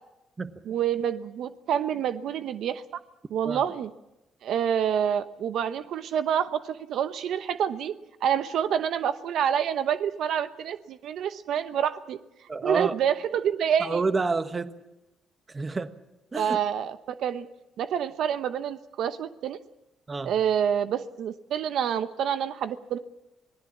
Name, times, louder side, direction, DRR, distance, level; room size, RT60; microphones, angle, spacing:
voice 1, 0.6-2.8 3.3-3.9 4.4-8.0 8.2-12.2 12.6-14.0 16.3-17.5 17.8-19.6 20.2-23.0, right 8 dB, 75° right, 0.9 m, -27 dB
voice 2, 12.5-12.9 13.8-14.7 15.5-15.9 16.3-16.6 20.1-20.3, right 3 dB, 30° right, 1.3 m, -28 dB
26.5 x 19.0 x 7.3 m
cardioid pair, 90°, 0 cm